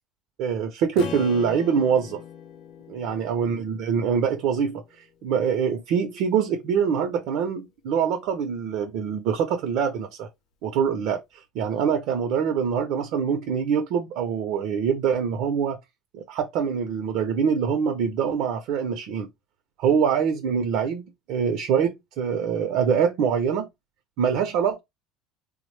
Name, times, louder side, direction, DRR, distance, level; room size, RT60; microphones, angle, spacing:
voice 1, 0.4-2.2 2.9-4.8 5.2-10.3 10.6-15.8 16.1-19.3 19.8-23.7 24.2-24.8, right 7 dB, 70° right, 0.6 m, -24 dB
Strum, 1.0-5.2, left 8 dB, 65° left, 0.6 m, -41 dB
3.4 x 2.1 x 3.1 m
cardioid pair, 125°, 0 cm